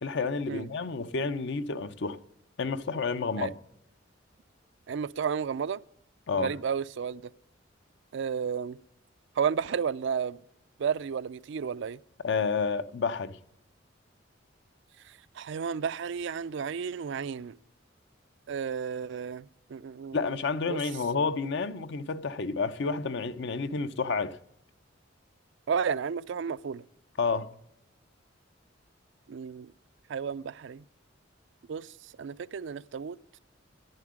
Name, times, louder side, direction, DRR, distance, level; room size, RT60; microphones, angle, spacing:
voice 1, 0.0-2.2 2.6-3.5 6.3-6.5 12.2-13.4 20.1-24.4 27.2-27.5, left 4 dB, 65° left, 0.7 m, -30 dB
voice 2, 4.9-5.8 6.3-7.2 8.1-8.8 9.4-10.4 10.8-12.0 15.4-17.6 18.5-20.2 20.7-20.8 25.7-26.8 29.3-29.7 30.1-30.8 31.7-31.9 32.2-33.2, right 6 dB, 65° right, 0.4 m, -32 dB
10.5 x 10.0 x 6.3 m
head